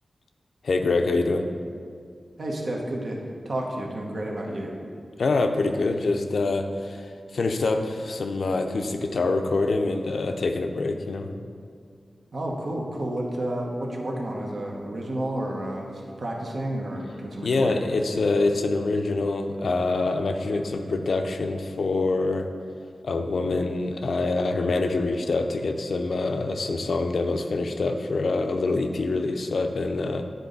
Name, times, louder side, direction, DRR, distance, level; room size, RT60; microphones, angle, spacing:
voice 1, 0.6-1.4 5.2-11.3 17.4-22.5 23.0-30.2, left 3 dB, 75° left, 6 dB, 0.5 m, -25 dB
voice 2, 2.4-4.7 12.3-17.8, right 1 dB, 60° right, -1 dB, 1.1 m, -31 dB
9.2 x 4.0 x 3.9 m, 2.2 s
wide cardioid pair, 90°, 0 cm